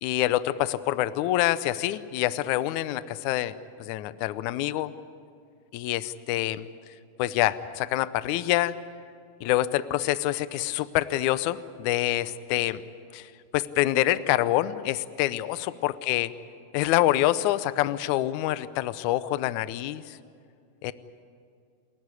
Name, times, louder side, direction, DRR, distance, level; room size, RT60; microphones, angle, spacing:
voice 1, 0.0-3.5 3.8-4.9 5.7-6.7 7.2-8.8 9.4-12.8 13.1-13.3 13.5-16.3 16.7-20.2 20.8-20.9, left 14 dB, 80° left, 15 dB, 1.7 m, -26 dB
29.0 x 14.5 x 9.8 m, 2.3 s
omnidirectional pair, 4.3 m